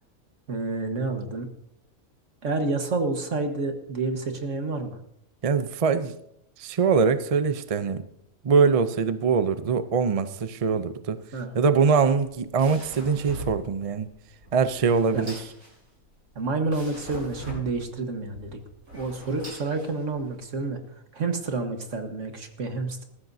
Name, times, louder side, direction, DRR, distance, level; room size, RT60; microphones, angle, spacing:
voice 1, 0.5-1.5 2.4-5.0 11.3-11.5 15.1-15.2 16.4-18.6 18.9-20.8 21.1-23.0, right 3 dB, 60° right, 5 dB, 1.8 m, -29 dB
voice 2, 5.4-6.2 6.6-8.1 8.4-11.2 11.5-14.1 14.5-15.4, right 5 dB, 45° right, 11 dB, 0.4 m, -23 dB
sound 1, 12.2-20.4, right 1 dB, 80° right, 8.0 m, -42 dB
19.5 x 14.5 x 2.7 m, 0.73 s
omnidirectional pair, 1.4 m